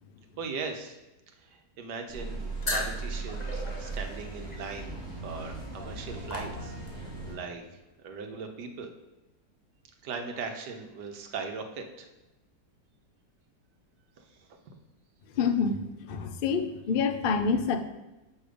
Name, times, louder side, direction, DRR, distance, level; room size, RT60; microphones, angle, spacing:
voice 1, 0.4-1.0 1.5-7.6 8.0-8.9 10.0-12.1 14.2-14.3 14.7-14.8, right 4 dB, 80° right, 5 dB, 1.5 m, -39 dB
sound 1, 2.1-7.3, right 3 dB, ahead, 2.9 m, -38 dB
sound 2, 2.6-7.1, left 2 dB, 30° left, 1.1 m, -38 dB
voice 2, 15.4-15.8 16.1-17.8, left 5 dB, 85° left, 6 dB, 0.4 m, -26 dB
6.8 x 5.3 x 5.0 m, 1.0 s
omnidirectional pair, 1.8 m